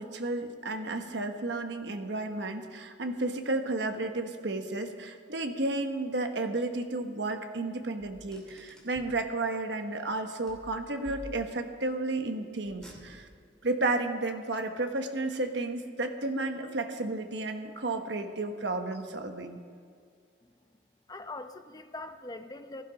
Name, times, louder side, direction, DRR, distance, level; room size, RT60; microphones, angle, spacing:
voice 1, 0.0-13.3 13.6-19.6, right 2 dB, 65° right, 6 dB, 1.2 m, -32 dB
Car, 8.0-9.2 10.5-11.8 12.6-13.5, equal, 5° left, 2.8 m, -49 dB
voice 2, 21.1-22.8, left 2 dB, 20° left, 8 dB, 0.7 m, -42 dB
16.0 x 12.0 x 5.2 m, 2.3 s
head